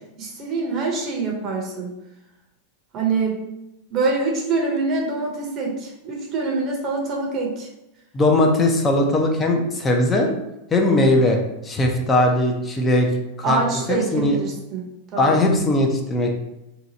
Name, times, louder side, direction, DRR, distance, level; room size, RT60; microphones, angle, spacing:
voice 1, 0.2-1.9 2.9-3.4 3.9-7.7 13.4-15.4, right 3 dB, 35° right, -1 dB, 0.8 m, -25 dB
voice 2, 8.1-10.3 10.7-11.4 11.6-13.1 13.4-13.6 13.9-14.4 15.2-16.3, left 1 dB, 20° left, 1 dB, 0.6 m, -19 dB
2.8 x 2.3 x 4.0 m, 0.91 s
supercardioid pair, 130°, 0 cm